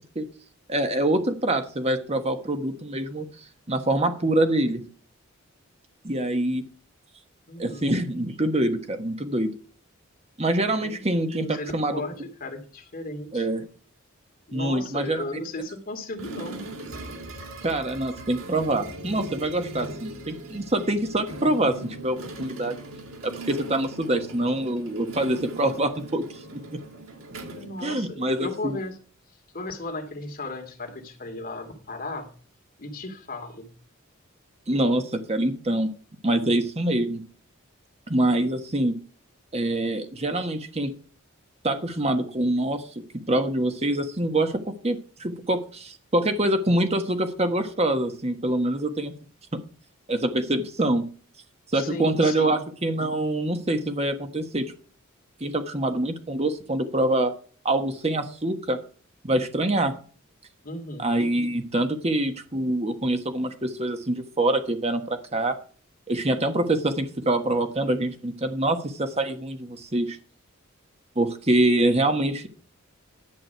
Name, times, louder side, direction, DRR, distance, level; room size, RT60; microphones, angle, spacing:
voice 1, 0.7-3.2 3.7-4.8 6.0-6.6 7.6-9.5 10.4-12.0 13.3-13.7 14.5-15.2 17.6-22.8 23.2-26.2 26.5-26.6 27.8-28.7 34.7-35.9 36.2-37.2 38.1-38.9 39.5-40.9 41.6-42.8 43.3-49.1 50.1-51.0 51.7-54.6 55.4-57.3 57.6-58.8 59.2-59.9 61.0-65.5 66.1-70.2 71.1-72.5, right 1 dB, 30° right, 7 dB, 1.3 m, -25 dB
voice 2, 7.5-7.9 10.8-11.0 11.3-12.1 12.4-13.5 14.5-16.6 27.5-29.0 29.5-32.3 32.8-33.7 51.7-52.6 60.6-61.1, left 2 dB, 45° left, 4 dB, 2.4 m, -35 dB
sound 1, 16.2-28.5, right 1 dB, 90° right, 2.9 m, -40 dB
11.0 x 8.6 x 4.5 m, 0.40 s
head